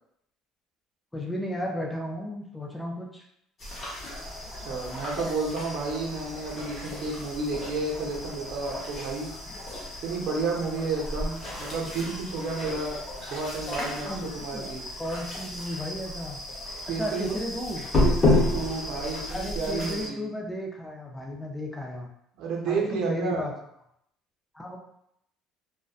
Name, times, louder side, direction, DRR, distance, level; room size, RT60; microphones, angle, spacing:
voice 1, 1.1-3.2 13.7-14.7 15.0-16.4 16.8-17.9 19.3-22.1 22.7-23.5 24.5-24.8, equal, 10° left, 0 dB, 0.4 m, -34 dB
sound 1, 3.6-20.1, left 2 dB, 30° left, 0.9 m, -32 dB
voice 2, 4.6-9.3 10.0-13.0 13.3-14.8 16.9-17.3 18.0-20.3 22.4-23.5, right 4 dB, 65° right, -1 dB, 0.7 m, -31 dB
2.6 x 2.1 x 2.3 m, 0.75 s
cardioid pair, 135°, 0 cm